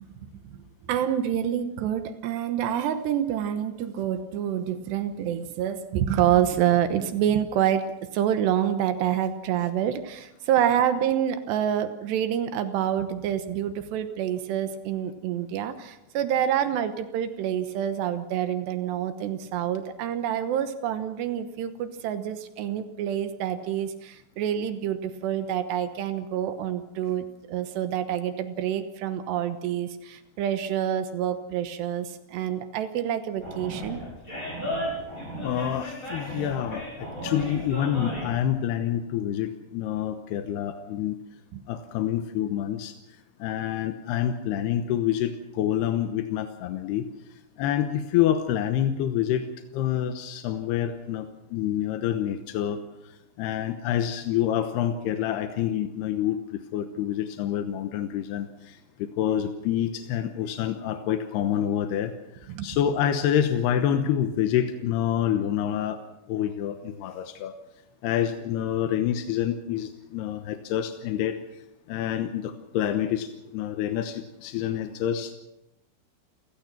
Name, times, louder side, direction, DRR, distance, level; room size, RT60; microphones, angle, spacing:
voice 1, 0.5-7.9 8.1-34.0 41.5-41.6 62.5-62.7, right 10 dB, 75° right, 10 dB, 2.8 m, -27 dB
Animal, 33.4-38.4, equal, 15° left, 7.7 m, -34 dB
voice 2, 35.4-41.2 41.7-42.9 43.4-47.1 47.6-49.5 49.7-52.8 53.4-62.1 62.6-66.0 66.3-67.5 68.0-71.4 71.9-75.3, left 10 dB, 75° left, 8 dB, 2.5 m, -27 dB
29.0 x 16.0 x 6.0 m, 0.87 s
omnidirectional pair, 5.9 m